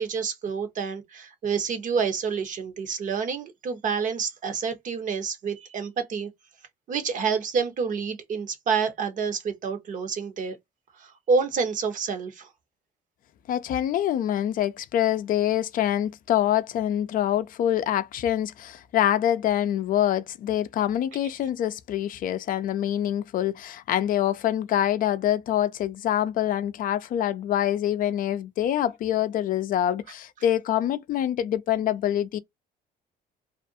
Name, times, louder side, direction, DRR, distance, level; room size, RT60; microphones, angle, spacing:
voice 1, 0.0-6.3 6.9-10.6 11.0-12.5, right 5 dB, 50° right, 0.8 m, -28 dB
voice 2, 13.5-32.4, left 11 dB, 55° left, 0.4 m, -25 dB
2.4 x 2.2 x 2.6 m
cardioid pair, 110°, 17 cm